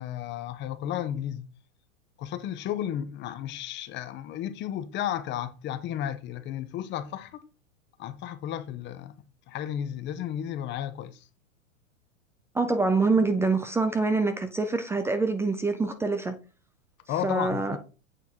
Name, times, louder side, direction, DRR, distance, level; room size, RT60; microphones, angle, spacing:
voice 1, 0.0-1.4 2.2-7.4 8.0-9.2 9.5-11.2 17.1-17.8, left 10 dB, 25° left, 0.8 m, -33 dB
voice 2, 12.5-16.4 17.2-17.8, right 3 dB, 5° right, 0.4 m, -25 dB
8.3 x 4.2 x 3.6 m
hypercardioid pair, 120°, 40 cm